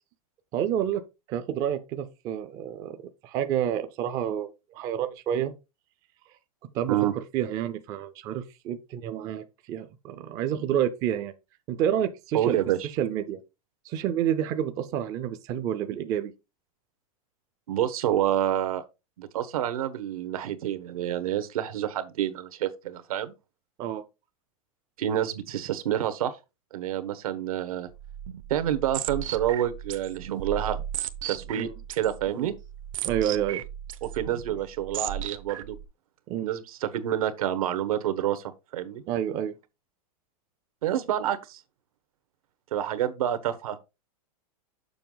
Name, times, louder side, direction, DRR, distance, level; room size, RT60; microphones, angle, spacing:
voice 1, 0.5-1.0 1.3-3.0 3.2-5.5 6.7-11.3 11.7-12.6 13.0-13.4 13.9-16.3 23.8-24.0 31.6-31.7 32.4-32.5 33.0-33.6 36.3-36.5 39.1-39.5, right 10 dB, 20° right, 0.4 m, -29 dB
voice 2, 12.3-12.9 17.7-18.8 19.2-23.3 25.0-26.3 26.7-27.9 28.5-30.8 31.3-32.5 34.0-35.8 36.4-38.4 38.7-39.0 40.8-41.6 42.7-43.8, right 11 dB, 80° right, 1.2 m, -28 dB
sound 1, 27.9-35.8, right 11 dB, 65° right, 0.8 m, -36 dB
6.9 x 5.5 x 3.8 m
supercardioid pair, 175°, 18 cm